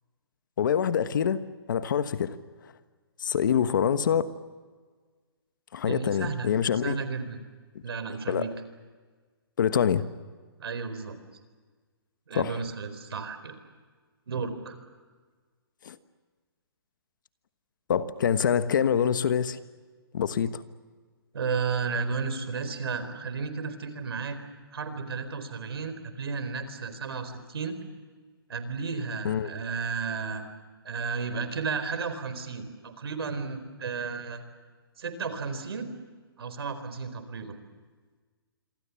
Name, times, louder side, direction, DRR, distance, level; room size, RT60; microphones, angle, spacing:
voice 1, 0.6-1.4 1.7-2.4 3.2-4.3 5.7-7.0 8.3-8.5 9.6-10.0 12.3-12.6 15.8-16.0 17.9-19.6 20.1-20.6 29.2-29.5, left 8 dB, 50° left, 12 dB, 1.3 m, -25 dB
voice 2, 5.8-6.5 6.8-7.4 7.8-8.5 10.6-11.2 12.3-13.5 14.3-14.8 21.3-24.4 24.7-27.8 28.5-30.5 30.8-34.4 35.0-35.9 36.4-37.6, right 5 dB, 75° right, 10 dB, 4.2 m, -33 dB
26.5 x 24.5 x 7.1 m, 1.5 s
hypercardioid pair, 170°, 13 cm